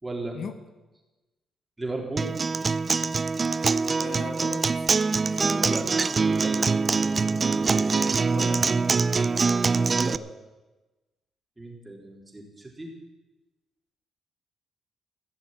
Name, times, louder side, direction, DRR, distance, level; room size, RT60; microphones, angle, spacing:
voice 1, 0.0-0.4 1.8-2.3 5.5-5.9 6.3-6.7 9.9-10.2 11.6-12.9, right 2 dB, 15° right, 0 dB, 3.7 m, -35 dB
Acoustic guitar, 2.2-10.2, right 4 dB, 35° right, 0.4 m, -24 dB
voice 2, 4.0-4.9 5.3-5.9 8.2-8.9, left 6 dB, 60° left, 9 dB, 1.1 m, -40 dB
16.0 x 7.2 x 9.0 m, 1.1 s
cardioid pair, 90°, 0 cm